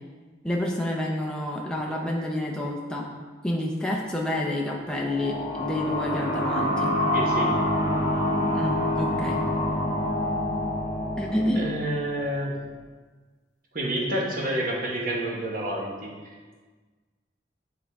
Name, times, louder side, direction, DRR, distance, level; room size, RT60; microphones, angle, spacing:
voice 1, 0.4-3.1 3.4-7.0 8.5-9.4 11.2-11.7, left 1 dB, 5° left, -2 dB, 0.6 m, -28 dB
sound 1, 4.9-12.3, left 1 dB, 40° left, 1.5 m, -26 dB
voice 2, 7.1-7.5 11.6-12.6 13.7-16.1, right 1 dB, 50° right, -2 dB, 1.2 m, -29 dB
9.3 x 3.8 x 3.5 m, 1.4 s
head